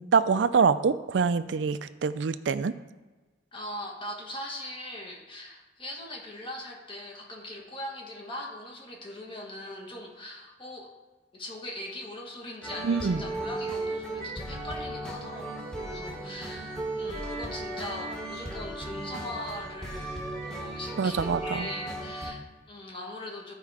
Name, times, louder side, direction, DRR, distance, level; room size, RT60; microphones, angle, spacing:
voice 1, 0.0-2.7 12.8-13.2 21.0-21.7, right 5 dB, 80° right, 13 dB, 0.4 m, -25 dB
voice 2, 3.5-10.9 11.3-23.5, left 1 dB, 30° left, -1 dB, 1.5 m, -40 dB
sound 1, 12.6-22.3, right 2 dB, 5° left, 1.5 m, -36 dB
13.0 x 4.6 x 4.8 m, 1.2 s
head